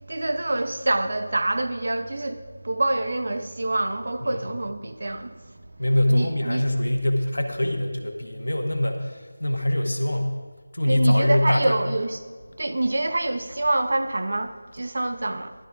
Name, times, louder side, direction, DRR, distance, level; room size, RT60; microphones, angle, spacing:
voice 1, 0.1-5.4 6.1-6.6 10.9-12.2 12.6-15.5, right 2 dB, 60° right, 1.0 m, -26 dB
voice 2, 5.8-10.3 10.7-11.8, left 1 dB, 80° left, 1.3 m, -23 dB
19.5 x 12.0 x 2.4 m
figure-of-eight pair, 170°, 0 cm